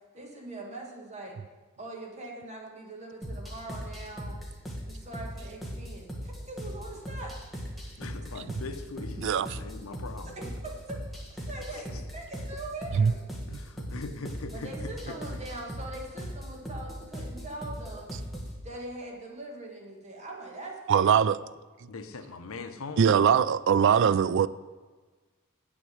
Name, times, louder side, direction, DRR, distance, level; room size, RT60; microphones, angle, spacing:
voice 1, 0.1-1.4 1.8-4.4 4.8-6.1 6.5-7.3 10.4-13.2 14.5-18.1 18.6-21.3 23.9-24.2, right 2 dB, 30° right, 0 dB, 1.7 m, -42 dB
sound 1, 3.2-18.6, equal, ahead, 1.5 m, -39 dB
voice 2, 8.0-10.3 13.5-15.2 21.9-23.1, left 3 dB, 75° left, 8 dB, 0.8 m, -41 dB
voice 3, 9.2-9.6 13.0-13.1 20.9-21.4 23.0-24.5, right 7 dB, 60° right, 17 dB, 0.3 m, -22 dB
7.9 x 6.1 x 7.9 m, 1.3 s
head